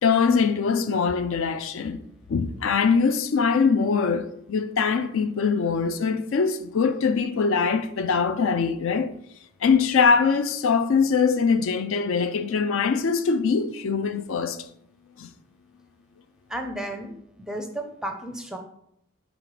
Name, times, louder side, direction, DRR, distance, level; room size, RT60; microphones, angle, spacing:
voice 1, 0.0-2.0 2.3-9.1 9.6-14.6 15.2-15.3, left 5 dB, 65° left, 0.4 m, -22 dB
voice 2, 16.5-18.6, right 1 dB, 5° right, 0.5 m, -33 dB
4.9 x 3.9 x 4.9 m
head